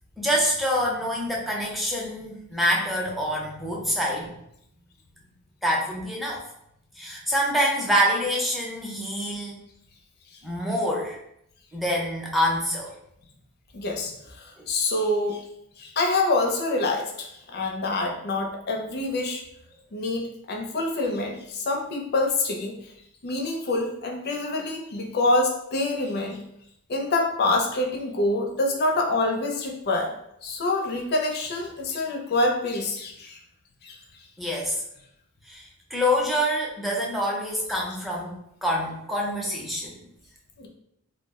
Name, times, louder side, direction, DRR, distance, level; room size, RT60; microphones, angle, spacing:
voice 1, 0.2-4.3 5.6-6.4 7.0-9.6 10.4-11.2 11.7-12.9 14.6-14.7 34.4-34.8 35.4-40.0, equal, ahead, -3 dB, 0.5 m, -26 dB
voice 2, 13.7-15.4 15.8-19.4 19.9-22.7 23.2-26.4 26.9-30.1 30.4-33.4 33.8-34.0 37.7-37.8 40.6-40.7, left 2 dB, 45° left, 1 dB, 0.5 m, -26 dB
2.3 x 2.0 x 3.5 m, 0.76 s
head